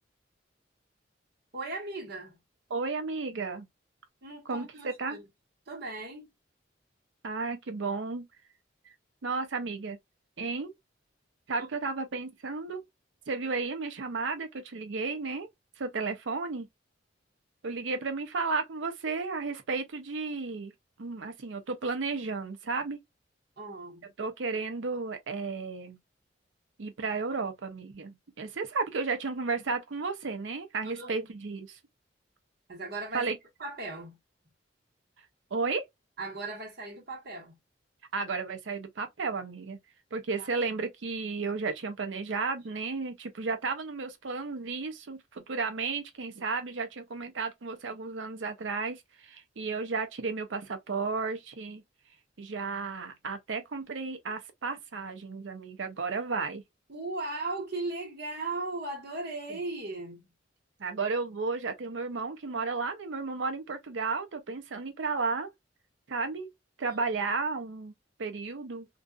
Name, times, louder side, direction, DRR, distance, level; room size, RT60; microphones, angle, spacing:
voice 1, 1.5-2.4 4.2-5.3 5.7-6.3 11.6-11.7 23.6-24.1 30.8-31.3 32.7-33.3 33.6-34.2 36.2-37.6 40.4-40.5 56.9-60.3 66.9-67.0, right 2 dB, 60° right, 1.2 m, -37 dB
voice 2, 2.7-3.7 4.5-5.2 7.2-8.3 9.2-10.0 10.4-10.7 11.5-12.8 13.3-15.5 15.8-16.7 17.6-20.7 21.0-23.0 24.2-26.0 26.8-31.8 33.1-33.4 35.5-35.8 38.1-39.8 40.1-51.8 52.4-56.6 59.5-59.6 60.8-65.5 66.1-66.5 66.8-67.9 68.2-68.9, right 4 dB, 85° right, 0.6 m, -33 dB
2.5 x 2.4 x 2.3 m
head